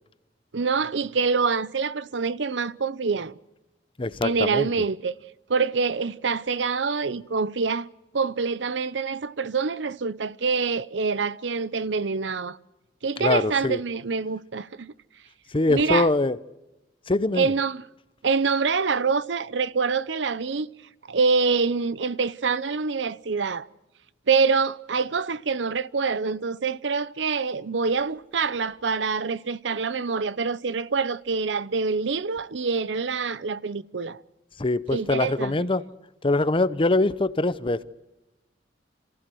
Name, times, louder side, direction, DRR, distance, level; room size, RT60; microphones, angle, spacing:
voice 1, 0.5-3.4 4.2-5.1 5.5-7.9 8.1-12.6 13.0-14.9 15.7-16.1 17.3-17.8 18.2-20.7 21.1-23.7 24.3-34.2 34.9-35.5, right 5 dB, 80° right, 0.7 m, -25 dB
voice 2, 4.0-4.7 13.2-13.8 15.5-16.4 17.1-17.5 34.6-35.8 36.2-37.8, left 2 dB, 30° left, 0.8 m, -23 dB
27.5 x 15.5 x 7.8 m
head